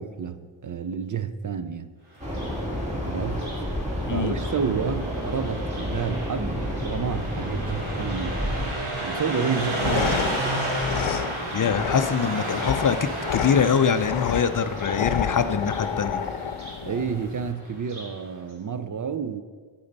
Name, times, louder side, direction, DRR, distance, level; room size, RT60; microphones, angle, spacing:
voice 1, 0.0-1.9 3.0-3.5 4.1-8.4 9.0-10.3 16.8-19.4, right 6 dB, 40° right, 0.5 m, -30 dB
sound 1, 2.2-8.7, equal, 15° right, 2.0 m, -30 dB
Car passing by, 2.2-18.2, right 1 dB, 90° right, 2.8 m, -33 dB
voice 2, 4.1-4.4 11.5-16.2, left 7 dB, 45° left, 0.4 m, -24 dB
sound 2, 9.5-17.5, left 7 dB, 80° left, 0.7 m, -30 dB
9.8 x 8.6 x 4.0 m
wide cardioid pair, 100°, 49 cm